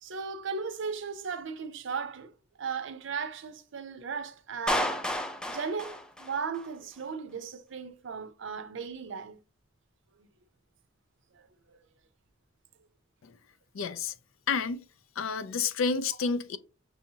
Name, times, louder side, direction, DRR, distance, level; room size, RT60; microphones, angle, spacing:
voice 1, 0.0-2.3 2.6-5.0 5.5-9.4 10.2-10.3 11.3-11.8, right 5 dB, 65° right, 0.5 m, -36 dB
Clapping, 4.7-6.7, left 1 dB, 5° left, 0.4 m, -32 dB
voice 2, 13.7-14.1 14.5-14.8 15.2-16.6, left 5 dB, 85° left, 0.4 m, -30 dB
6.2 x 2.7 x 2.8 m
head